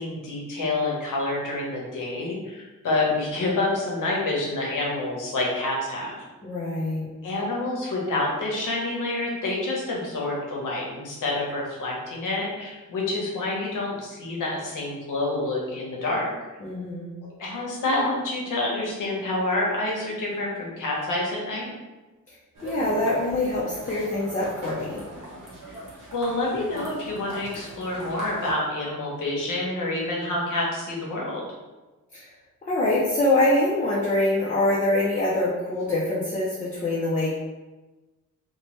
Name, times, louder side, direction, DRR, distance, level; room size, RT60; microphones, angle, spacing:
voice 1, 0.0-6.2 7.2-16.3 17.2-21.7 25.7-25.8 26.1-31.4, left 2 dB, 75° left, -3 dB, 0.9 m, -28 dB
voice 2, 6.4-7.1 16.6-17.1 22.6-25.0 32.1-32.3 32.7-37.4, left 1 dB, 25° left, -6 dB, 0.4 m, -24 dB
sound 1, 22.5-28.5, right 2 dB, 80° right, 0.9 m, -40 dB
3.1 x 2.1 x 3.0 m, 1.2 s
wide cardioid pair, 160°, 32 cm